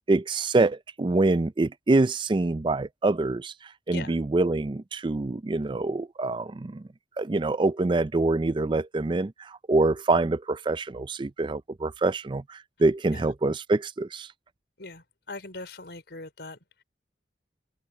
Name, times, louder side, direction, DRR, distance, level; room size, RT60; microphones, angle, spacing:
voice 1, 0.1-6.9 7.2-14.3, right 2 dB, 25° right, 0.4 m, -25 dB
voice 2, 14.8-16.8, left 3 dB, 70° left, 4.4 m, -41 dB
open air
head